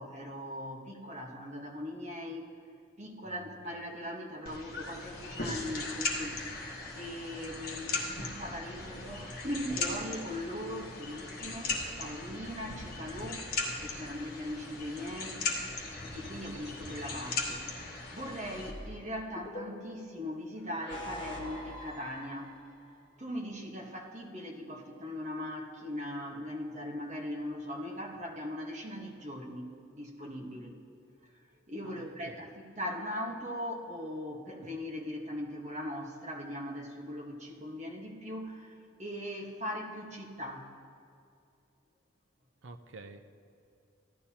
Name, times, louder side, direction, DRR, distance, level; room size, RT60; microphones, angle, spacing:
voice 1, 0.0-2.4 3.0-6.4 6.9-13.4 13.8-15.5 16.1-22.6 23.2-30.7 31.7-40.7, equal, 35° right, -1 dB, 1.3 m, -40 dB
voice 2, 3.2-3.8 6.3-6.6 7.8-8.0 13.9-14.2 31.8-32.5 34.6-34.7 42.6-43.2, right 3 dB, 85° right, 7 dB, 0.6 m, -51 dB
sound 1, 4.4-18.7, left 3 dB, 50° left, 1.3 m, -38 dB
sound 2, 15.8-17.6 18.5-20.0 20.6-22.8, left 1 dB, 30° left, 1.8 m, -45 dB
15.5 x 12.0 x 2.9 m, 2.5 s
head